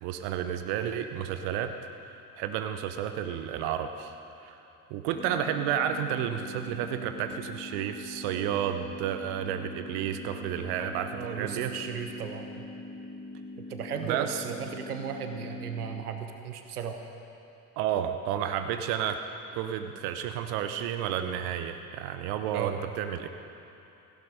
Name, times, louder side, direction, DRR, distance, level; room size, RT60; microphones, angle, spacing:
voice 1, 0.0-1.7 2.4-4.1 4.4-4.6 4.9-11.8 14.0-14.4 17.8-19.2 19.5-23.3, right 9 dB, 60° right, 8 dB, 1.0 m, -31 dB
sound 1, 5.1-16.0, left 2 dB, 30° left, 1.7 m, -42 dB
voice 2, 11.1-12.6 13.7-17.0 22.5-22.8, right 7 dB, 80° right, 6 dB, 1.1 m, -36 dB
17.0 x 16.0 x 5.0 m, 2.8 s
figure-of-eight pair, 55°, 44 cm